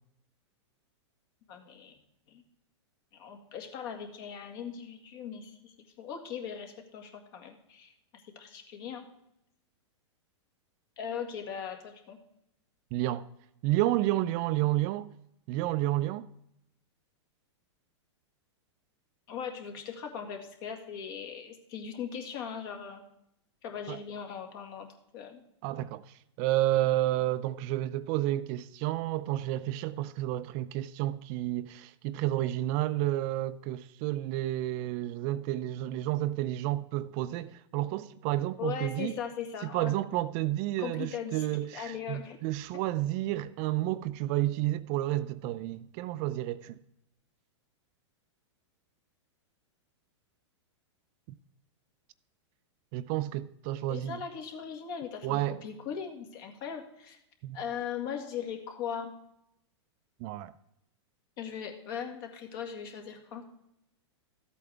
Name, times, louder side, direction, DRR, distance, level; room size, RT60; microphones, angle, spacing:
voice 1, 1.5-2.0 2.3-2.4 3.1-7.9 8.4-9.0 11.0-12.2 19.3-23.0 23.6-24.9 25.1-25.4 38.6-39.9 40.8-41.5 41.7-42.4 42.7-42.8 53.9-57.2 57.5-59.1 61.4-63.5, left 7 dB, 50° left, 2.0 m, -39 dB
voice 2, 12.9-13.3 13.6-15.1 15.5-16.3 23.9-24.0 25.6-39.1 39.7-46.8 52.9-54.2 55.2-55.6 57.4-57.6 60.2-60.5, right 15 dB, 40° right, 0.5 m, -30 dB
13.0 x 8.3 x 3.4 m
hypercardioid pair, 130°, 15 cm